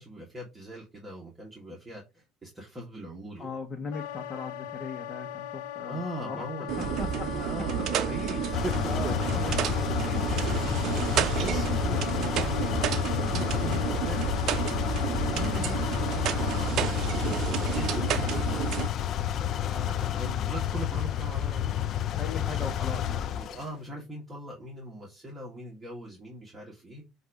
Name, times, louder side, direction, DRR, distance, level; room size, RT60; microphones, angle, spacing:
voice 1, 0.0-3.6 5.9-14.4 15.1-18.7 19.4-21.8 22.2-27.0, right 1 dB, 20° right, 1.7 m, -41 dB
voice 2, 3.4-6.5 6.8-7.3 7.6-7.7 8.3-8.6 8.8-9.5 10.3-10.4 15.0-15.3 19.7-19.9 22.2-23.0, left 4 dB, 30° left, 1.2 m, -38 dB
Wind instrument woodwind instrument, 3.9-16.8, left 12 dB, 90° left, 0.7 m, -40 dB
sound 1, 6.7-18.9, right 10 dB, 55° right, 0.6 m, -30 dB
sound 2, 8.5-23.6, left 11 dB, 50° left, 0.4 m, -30 dB
7.9 x 2.7 x 4.8 m
cardioid pair, 115°, 0 cm